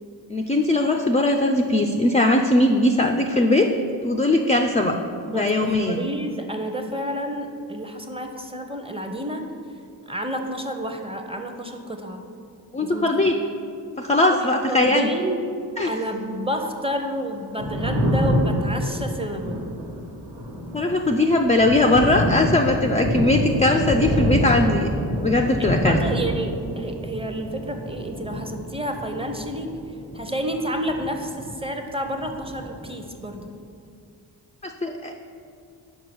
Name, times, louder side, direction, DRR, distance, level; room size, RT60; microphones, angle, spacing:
voice 1, 0.3-3.7 4.0-5.0 5.3-6.0 12.7-13.3 14.0-15.1 15.8-15.9 20.7-24.9 25.1-26.0 34.6-35.1, left 2 dB, 15° left, 3 dB, 0.4 m, -20 dB
voice 2, 5.3-9.5 10.1-12.2 12.8-13.5 14.3-15.5 15.8-19.7 25.6-29.8 30.1-33.5, right 1 dB, 10° right, 4 dB, 0.7 m, -30 dB
Thunder, 17.4-33.3, equal, 85° right, 1.2 m, -27 dB
5.4 x 4.7 x 5.9 m, 2.4 s
cardioid pair, 45°, 47 cm